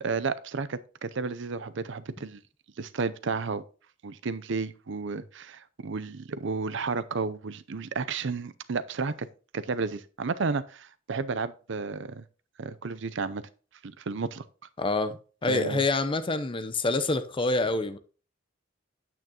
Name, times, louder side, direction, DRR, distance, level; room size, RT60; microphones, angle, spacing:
voice 1, 0.0-2.4 2.8-3.6 4.0-9.3 9.5-12.2 12.6-13.4 13.8-14.4 15.5-15.8, right 4 dB, 65° right, 0.6 m, -32 dB
voice 2, 14.8-18.0, left 2 dB, 25° left, 0.7 m, -27 dB
9.0 x 8.5 x 2.9 m
head